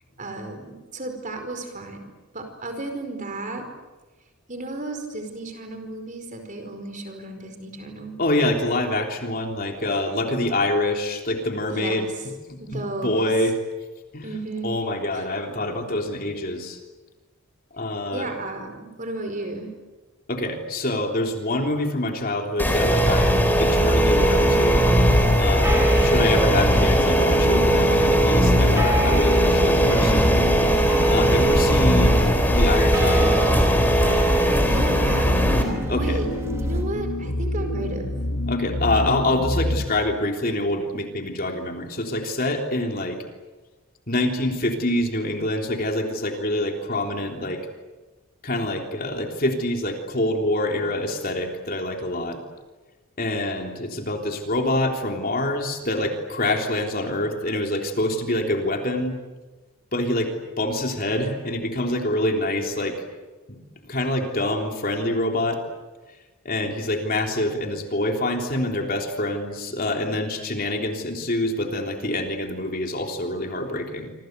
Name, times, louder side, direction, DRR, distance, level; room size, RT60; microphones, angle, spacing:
voice 1, 0.2-2.1 2.3-3.7 4.5-8.2 11.7-12.1 12.6-13.3 14.2-14.8 15.1-15.3 18.1-19.7 34.6-35.5 35.9-36.3 36.6-38.1, right 2 dB, 35° right, 6 dB, 4.8 m, -33 dB
voice 2, 8.2-12.1 12.5-13.6 14.1-14.3 14.6-16.8 17.7-18.3 20.3-24.9 25.4-30.4 31.1-33.4 35.9-36.2 38.5-43.2 44.1-47.6 48.4-52.4 53.2-59.2 59.9-63.0 63.5-65.6 66.5-74.1, left 1 dB, 40° left, 3 dB, 3.4 m, -26 dB
sound 1, 22.6-35.6, right 1 dB, 10° left, 4.1 m, -19 dB
sound 2, 23.8-39.9, left 1 dB, 75° left, 2.8 m, -28 dB
sound 3, 24.3-36.8, right 1 dB, 10° right, 2.9 m, -31 dB
27.0 x 27.0 x 8.2 m, 1.2 s
head